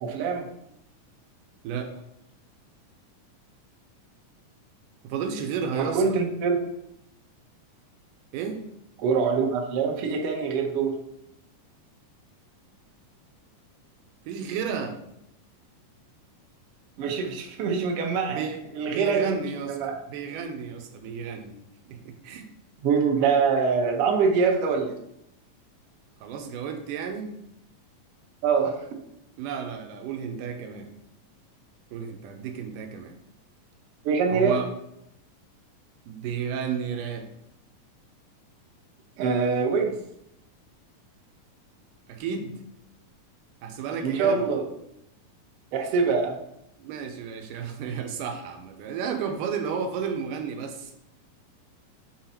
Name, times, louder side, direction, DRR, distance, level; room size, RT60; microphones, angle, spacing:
voice 1, 0.0-0.5 5.7-6.6 9.0-10.9 17.0-18.4 18.7-19.4 19.7-20.0 22.8-25.0 28.4-28.8 34.0-34.6 39.2-39.9 44.0-44.6 45.7-46.4, right 5 dB, 65° right, 2 dB, 1.5 m, -24 dB
voice 2, 5.0-6.2 8.3-8.6 14.3-15.0 18.3-19.8 20.1-21.5 21.9-22.5 26.2-27.3 29.4-30.9 31.9-33.2 34.3-34.7 36.1-37.3 42.1-42.6 43.6-44.5 46.8-50.9, right 7 dB, 85° right, 5 dB, 2.3 m, -32 dB
7.2 x 4.0 x 4.3 m, 0.80 s
omnidirectional pair, 3.7 m